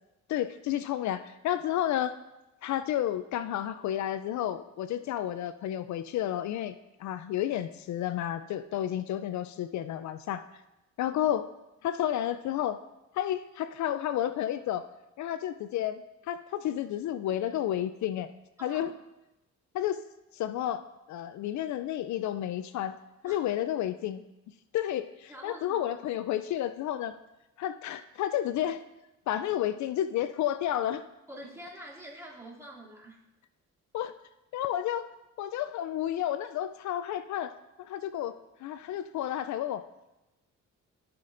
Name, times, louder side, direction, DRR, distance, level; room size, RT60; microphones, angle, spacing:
voice 1, 0.3-2.2 2.6-10.4 11.0-11.5 11.8-12.8 13.1-14.9 15.2-18.3 18.6-18.9 19.7-20.0 20.3-20.8 21.1-23.0 23.2-24.2 24.7-27.2 27.6-28.8 29.3-31.0 33.9-34.1 34.5-35.1 35.4-37.5 37.8-38.4 38.6-39.8, left 11 dB, 70° left, 12 dB, 0.4 m, -31 dB
voice 2, 18.6-18.9 23.3-23.4 25.3-25.8 31.3-33.2, right 1 dB, 10° right, -5 dB, 2.7 m, -46 dB
14.5 x 5.9 x 2.6 m, 0.95 s
cardioid pair, 90°, 30 cm